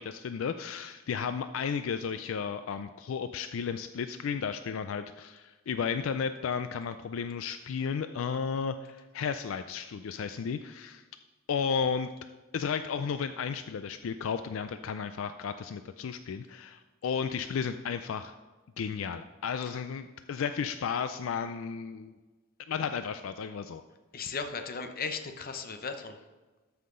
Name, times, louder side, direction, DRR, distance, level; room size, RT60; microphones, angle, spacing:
voice 1, 0.0-11.0 11.5-12.1 12.5-18.3 18.8-22.1 22.7-23.8, left 6 dB, 75° left, 10 dB, 0.4 m, -33 dB
voice 2, 24.1-26.2, left 5 dB, 45° left, 7 dB, 0.7 m, -36 dB
13.0 x 5.8 x 3.7 m, 1.2 s
head